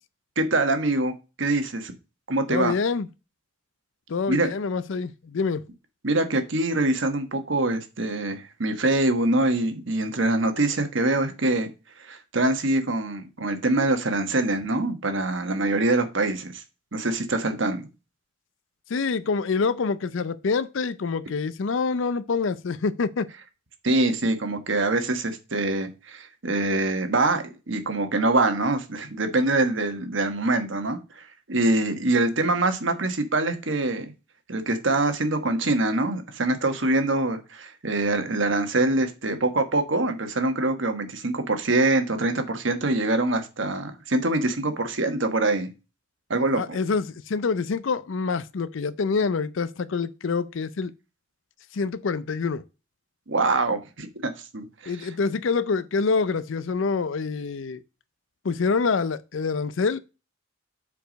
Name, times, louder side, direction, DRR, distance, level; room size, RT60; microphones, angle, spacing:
voice 1, 0.4-1.9 2.3-2.7 4.3-4.5 6.0-11.7 12.0-16.6 16.9-17.9 23.8-34.1 34.5-45.7 46.3-46.8 53.3-55.1, right 2 dB, 65° right, 1.3 m, -24 dB
voice 2, 2.5-3.1 4.1-5.6 18.9-23.3 46.5-50.9 51.7-52.6 54.9-57.8 58.4-60.0, left 4 dB, 70° left, 0.5 m, -26 dB
6.8 x 4.9 x 5.1 m
head